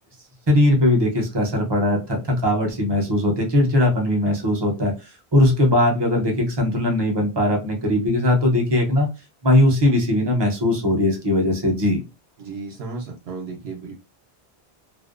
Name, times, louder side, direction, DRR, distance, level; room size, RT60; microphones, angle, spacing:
voice 1, 0.5-4.9 5.3-9.1 9.4-12.0, left 1 dB, 30° right, 1 dB, 0.5 m, -19 dB
voice 2, 12.4-13.9, right 4 dB, 80° right, 0 dB, 0.8 m, -34 dB
2.5 x 2.2 x 2.3 m, 0.28 s
omnidirectional pair, 1.0 m